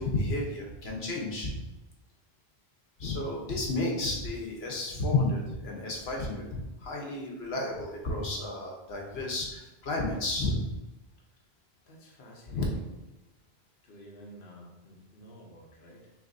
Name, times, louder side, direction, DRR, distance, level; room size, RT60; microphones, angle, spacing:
voice 1, 0.0-1.6 3.0-10.6 12.5-12.6, left 2 dB, 80° left, -1 dB, 1.3 m, -32 dB
voice 2, 11.8-13.0 13.8-16.1, equal, 60° left, -2 dB, 1.1 m, -51 dB
6.1 x 3.3 x 2.7 m, 0.99 s
omnidirectional pair, 1.1 m